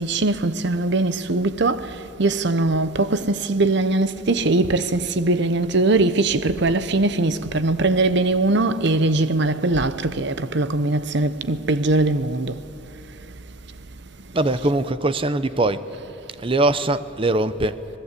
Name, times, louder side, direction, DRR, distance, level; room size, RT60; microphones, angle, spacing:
voice 1, 0.0-12.6, right 2 dB, 60° right, 0.9 m, -21 dB
voice 2, 14.3-15.9 16.4-17.8, right 2 dB, 25° right, 0.7 m, -21 dB
26.0 x 19.5 x 8.4 m
head